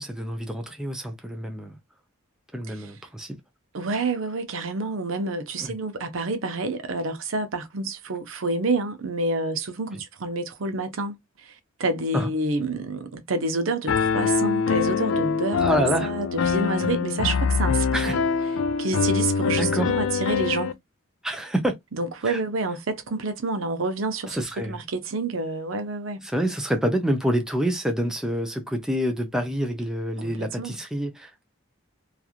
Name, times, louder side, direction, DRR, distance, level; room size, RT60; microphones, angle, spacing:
voice 1, 0.0-1.8 2.5-3.4 5.6-5.7 9.9-10.0 12.1-12.3 15.6-16.1 17.9-18.2 19.6-19.9 21.2-21.8 22.2-22.4 24.3-24.8 26.2-31.5, equal, 5° right, 0.5 m, -27 dB
voice 2, 3.7-11.2 11.4-11.5 11.8-18.2 18.8-20.8 22.0-26.3 30.4-30.8, right 3 dB, 70° right, 0.7 m, -28 dB
Piano, 13.9-20.7, left 5 dB, 75° left, 0.4 m, -24 dB
3.0 x 2.4 x 2.3 m
head